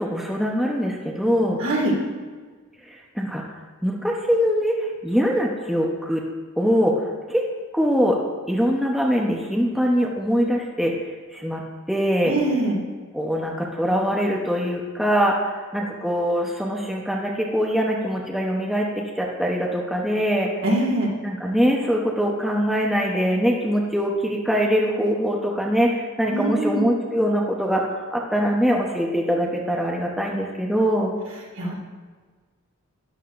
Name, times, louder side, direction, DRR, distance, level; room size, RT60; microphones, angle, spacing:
voice 1, 0.0-1.6 3.2-3.4 3.8-4.7 5.0-6.2 6.6-6.9 7.3-7.4 7.7-8.2 8.5-10.9 11.3-11.6 11.9-12.3 13.1-15.5 15.7-18.9 19.2-20.5 21.2-31.1, equal, ahead, -2 dB, 0.8 m, -22 dB
voice 2, 1.6-1.9 12.2-12.8 20.6-21.1 26.3-26.8 31.6-31.7, right 1 dB, 65° right, -2 dB, 2.2 m, -23 dB
12.5 x 10.5 x 2.5 m, 1.5 s
head